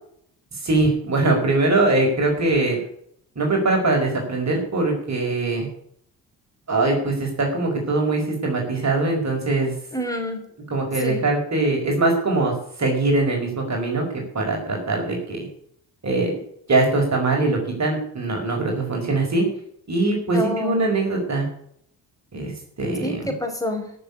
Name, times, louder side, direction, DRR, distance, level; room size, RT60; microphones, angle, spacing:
voice 1, 0.7-2.8 3.3-5.7 6.7-9.7 10.7-12.5 12.8-14.0 14.3-15.4 16.0-16.3 16.7-19.4 19.9-21.5 22.3-22.5 22.8-23.3, right 2 dB, 40° right, 1 dB, 5.1 m, -22 dB
voice 2, 9.9-10.4 11.0-11.2 20.3-20.8 23.0-23.8, left 1 dB, 10° left, 4 dB, 5.2 m, -27 dB
13.5 x 7.0 x 8.2 m, 0.67 s
supercardioid pair, 60°, 41 cm